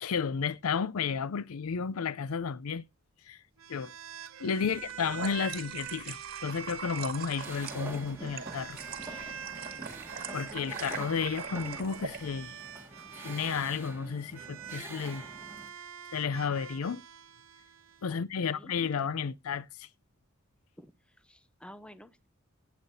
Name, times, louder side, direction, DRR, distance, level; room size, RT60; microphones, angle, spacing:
voice 1, 0.0-2.8 3.3-3.4 3.7-3.9 4.4-8.8 9.0-9.4 10.3-12.6 13.2-15.3 16.1-17.0 18.0-19.9, left 6 dB, 85° left, 0.5 m, -32 dB
sound 1, 3.6-13.7 14.3-18.1, right 7 dB, 70° right, 0.9 m, -45 dB
voice 2, 4.5-5.0 18.1-18.7 20.8-22.3, equal, 5° left, 0.5 m, -53 dB
sound 2, 4.8-12.2, right 6 dB, 45° right, 1.8 m, -42 dB
sound 3, 7.4-15.7, right 2 dB, 10° right, 1.8 m, -46 dB
16.5 x 8.3 x 2.7 m
head